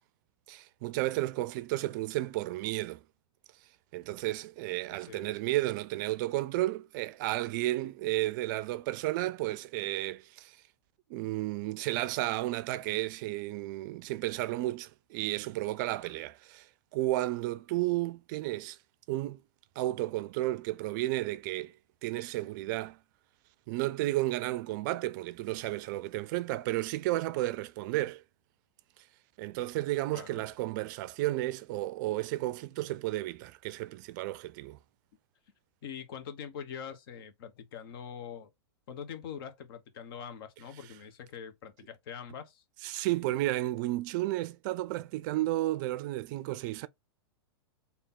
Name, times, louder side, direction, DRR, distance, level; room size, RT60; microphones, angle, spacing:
voice 1, 0.5-3.0 3.9-10.6 11.1-16.7 16.9-18.8 19.1-19.4 19.8-21.7 22.0-23.0 23.7-28.2 29.4-34.8 42.8-46.9, right 17 dB, 50° right, 0.4 m, -32 dB
voice 2, 4.9-5.3 12.9-13.0 30.1-30.4 35.8-38.5 38.9-42.6, left 7 dB, 60° left, 1.1 m, -43 dB
3.5 x 2.8 x 4.1 m
hypercardioid pair, 110°, 14 cm